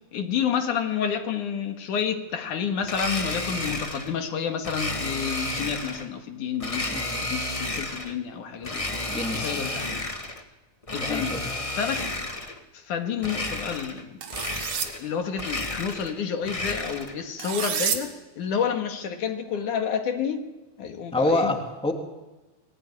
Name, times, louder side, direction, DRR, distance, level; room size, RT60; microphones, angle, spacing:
voice 1, 0.1-10.1 10.9-11.4 11.7-12.1 12.7-14.2 14.8-20.5 20.8-21.5, left 7 dB, 85° left, 3.4 m, -30 dB
Domestic sounds home sounds, 2.8-4.1 4.6-6.1 6.6-8.2 8.6-10.4 10.8-12.6 13.2-14.0 14.3-15.1 15.3-17.2, left 2 dB, 25° left, 0.7 m, -32 dB
voice 2, 6.9-7.2 9.1-9.7 11.0-11.5 21.1-21.9, left 2 dB, ahead, 2.5 m, -27 dB
sound 1, 14.2-14.9 17.4-18.0, right 8 dB, 75° right, 3.2 m, -28 dB
24.5 x 20.0 x 9.8 m
omnidirectional pair, 3.5 m